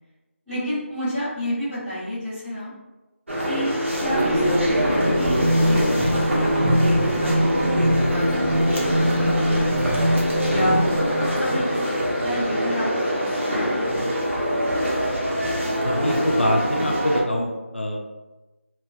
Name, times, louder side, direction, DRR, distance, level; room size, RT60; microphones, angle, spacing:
voice 1, 0.5-2.7 3.4-9.7 10.4-14.1, equal, ahead, -28 dB, 0.8 m, -30 dB
sound 1, 3.3-17.2, equal, 65° right, 0.9 m, -23 dB
sound 2, 3.9-11.6, equal, 35° right, 0.4 m, -24 dB
voice 2, 15.8-18.0, equal, 55° left, -1 dB, 0.4 m, -24 dB
3.2 x 2.0 x 2.6 m, 1.1 s
figure-of-eight pair, 180°, 7 cm